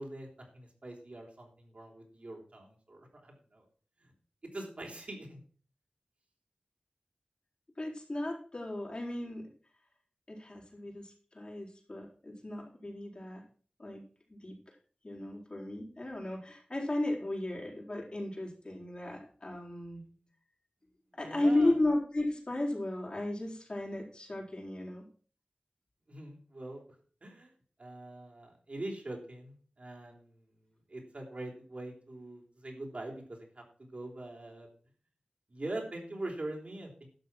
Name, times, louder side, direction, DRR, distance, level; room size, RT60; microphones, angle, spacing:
voice 1, 0.0-3.6 4.0-4.1 4.5-5.4 19.9-20.2 21.1-21.7 26.1-26.8 27.2-27.5 27.8-34.7 35.5-37.1, right 1 dB, 60° right, 0 dB, 4.0 m, -43 dB
voice 2, 7.8-9.5 10.3-13.4 13.8-14.0 14.3-14.5 15.0-20.0 21.1-25.1, left 1 dB, 45° left, -2 dB, 4.4 m, -34 dB
12.0 x 6.5 x 6.2 m, 0.42 s
wide cardioid pair, 70°, 2 cm